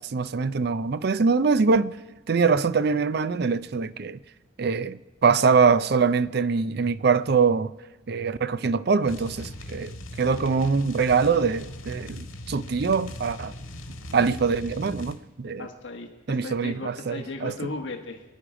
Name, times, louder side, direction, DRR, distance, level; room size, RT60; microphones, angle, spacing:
voice 1, 0.0-1.9 2.3-4.2 4.6-7.7 8.1-13.5 14.1-15.7 16.3-17.5, right 5 dB, 50° right, 0.4 m, -23 dB
sound 1, 9.1-15.2, left 1 dB, 80° left, 1.8 m, -39 dB
voice 2, 15.6-18.2, left 3 dB, 60° left, 1.3 m, -36 dB
26.0 x 10.0 x 5.0 m
head